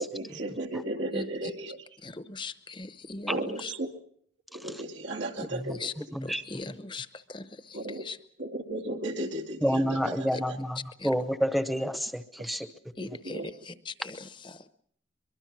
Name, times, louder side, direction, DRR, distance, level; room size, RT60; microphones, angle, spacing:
voice 1, 0.0-1.9 3.3-3.9 4.5-5.9 7.7-8.0 8.4-10.6 13.0-13.5, right 1 dB, 80° right, 1 dB, 2.3 m, -35 dB
voice 2, 2.0-3.7 5.4-5.9 6.2-8.2 10.3-10.4 11.0-11.1 13.0-14.7, left 3 dB, 25° left, 12 dB, 0.8 m, -40 dB
voice 3, 9.6-10.8 11.0-12.7, equal, ahead, 10 dB, 0.9 m, -28 dB
23.5 x 23.0 x 6.2 m, 0.64 s
head